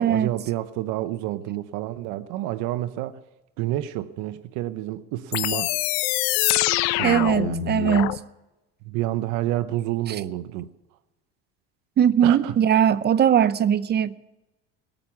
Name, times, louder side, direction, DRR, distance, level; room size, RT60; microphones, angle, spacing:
voice 1, 0.0-3.2 3.6-5.7 6.9-7.8 8.8-10.7 12.2-12.6, right 14 dB, 70° right, 0.8 m, -29 dB
sound 1, 5.3-8.2, left 18 dB, 85° left, 0.7 m, -24 dB
voice 2, 7.0-8.2 12.0-14.1, right 9 dB, 35° right, 0.6 m, -20 dB
19.5 x 9.0 x 5.9 m
supercardioid pair, 105°, 30 cm